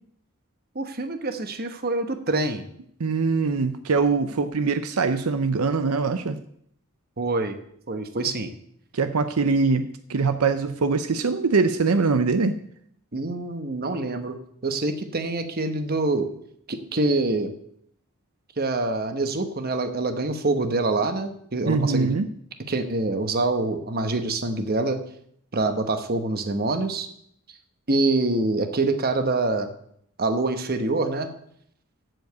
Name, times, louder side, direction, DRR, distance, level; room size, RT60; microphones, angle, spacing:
voice 1, 0.7-2.6 7.2-7.6 7.9-8.5 13.1-14.4 14.6-16.3 16.7-17.5 18.6-22.2 22.7-25.0 25.5-27.1 27.9-29.7 30.2-31.3, right 2 dB, 45° right, 8 dB, 1.1 m, -25 dB
voice 2, 3.0-6.4 8.9-12.6 21.7-22.3, right 4 dB, 80° right, 10 dB, 0.6 m, -23 dB
7.8 x 7.1 x 8.0 m, 0.68 s
head